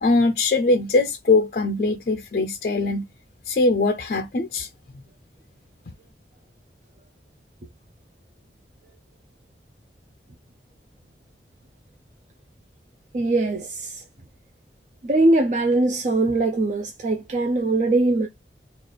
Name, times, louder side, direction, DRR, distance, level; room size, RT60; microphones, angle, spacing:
voice 1, 0.0-3.1 3.5-4.7, left 3 dB, 50° left, 0.4 m, -21 dB
voice 2, 13.1-14.0 15.0-18.3, right 2 dB, 45° right, 0.4 m, -21 dB
3.2 x 2.4 x 3.8 m
head